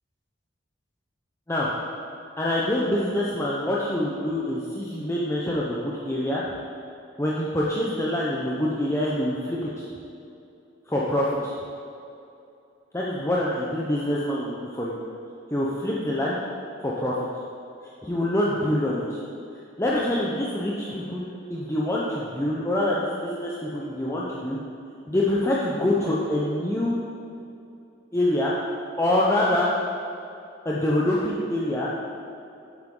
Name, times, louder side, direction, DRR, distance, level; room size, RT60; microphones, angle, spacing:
voice 1, 2.4-6.5 7.2-9.9 10.9-11.5 12.9-15.0 15.5-16.4 16.8-17.3 18.0-19.2 19.8-24.6 25.1-27.0 28.1-28.5 29.0-29.7 30.6-31.9, left 1 dB, 15° left, -5 dB, 0.7 m, -25 dB
9.4 x 7.8 x 3.8 m, 2.7 s
head